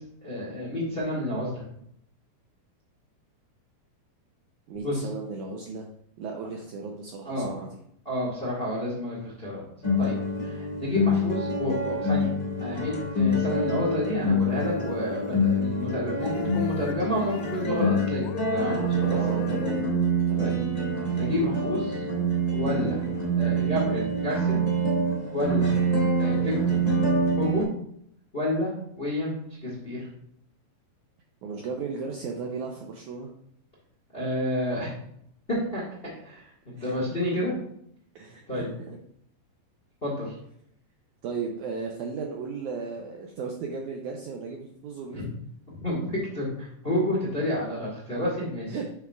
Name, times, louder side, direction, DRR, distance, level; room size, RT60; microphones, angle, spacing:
voice 1, 0.2-1.6 4.8-5.1 7.2-7.5 8.0-9.6 10.0-10.2 10.4-12.3 12.6-19.2 20.4-20.5 21.1-22.0 22.5-23.0 23.4-24.6 25.3-25.8 26.2-26.8 27.4-27.6 28.3-30.1 34.1-34.9 35.5-35.8 36.2-37.5 38.5-38.7 40.0-40.3 45.1-45.2 45.8-48.7, left 1 dB, 30° left, -5 dB, 1.1 m, -30 dB
voice 2, 4.7-5.9 6.2-7.7 19.0-19.9 20.3-20.6 31.4-33.3 36.8-36.9 38.2-39.0 41.2-45.2 48.7-48.9, right 5 dB, 85° right, 1 dB, 1.7 m, -35 dB
sound 1, 9.8-27.6, right 1 dB, 50° left, 0.4 m, -26 dB
sound 2, 14.5-15.9 16.2-19.8, left 8 dB, 90° left, 1.8 m, -40 dB
9.2 x 6.0 x 2.4 m, 0.70 s
omnidirectional pair, 4.3 m